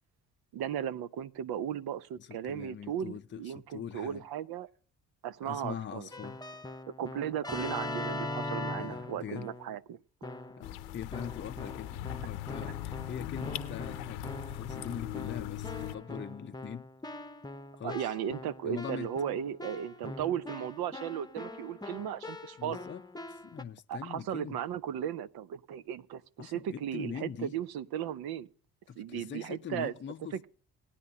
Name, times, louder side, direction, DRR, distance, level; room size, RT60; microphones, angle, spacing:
voice 1, 0.5-4.7 5.2-6.1 7.0-10.0 17.8-22.8 23.9-28.5 29.0-29.9 30.3-30.5, right 9 dB, 60° right, 0.8 m, -36 dB
voice 2, 2.2-4.2 5.4-6.4 8.4-9.5 10.6-16.9 17.8-18.1 18.6-19.1 22.6-23.0 23.3-24.6 26.4-27.5 28.9-30.5, left 8 dB, 25° left, 0.6 m, -42 dB
Keyboard (musical), 6.1-9.8 10.2-10.7 11.1-23.6, left 2 dB, 10° left, 0.9 m, -42 dB
sound 1, 10.6-15.9, left 13 dB, 75° left, 0.9 m, -40 dB
18.5 x 9.9 x 2.8 m
hypercardioid pair, 50°, 42 cm